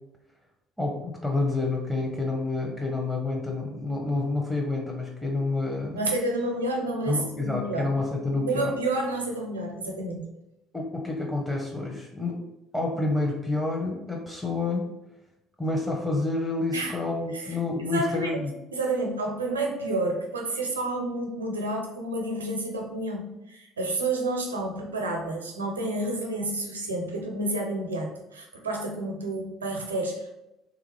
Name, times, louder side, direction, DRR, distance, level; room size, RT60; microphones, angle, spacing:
voice 1, 0.8-6.0 7.1-8.7 10.7-12.4 12.7-14.9 15.6-18.5, left 3 dB, 10° left, 0 dB, 0.8 m, -28 dB
voice 2, 5.9-7.9 8.2-10.3 16.7-16.9 17.3-17.6 17.9-18.4 18.7-30.4, right 2 dB, 90° right, 1 dB, 0.5 m, -30 dB
3.3 x 2.5 x 3.1 m, 0.93 s
hypercardioid pair, 55°, 0 cm